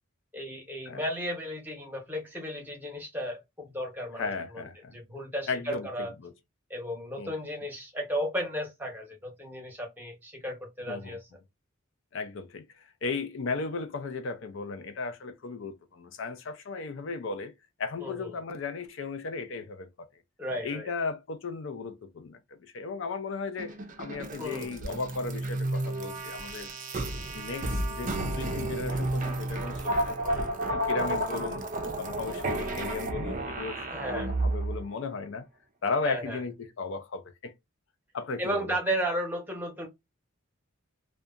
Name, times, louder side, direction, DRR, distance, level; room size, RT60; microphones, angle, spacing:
voice 1, 0.3-6.1 6.7-11.2 18.0-18.3 20.4-20.9 24.4-24.7 33.9-34.3 36.0-36.4 38.4-39.9, equal, 10° right, 0.8 m, -34 dB
voice 2, 4.2-4.9 5.5-5.9 6.2-6.3 7.2-7.3 10.9-11.2 12.1-17.5 17.8-20.1 20.6-26.7 27.3-31.6 32.0-35.4 35.8-37.5 38.1-38.7, left 4 dB, 60° left, 0.4 m, -36 dB
sound 1, 23.6-34.8, right 1 dB, 40° right, 0.4 m, -32 dB
2.7 x 2.2 x 2.4 m
head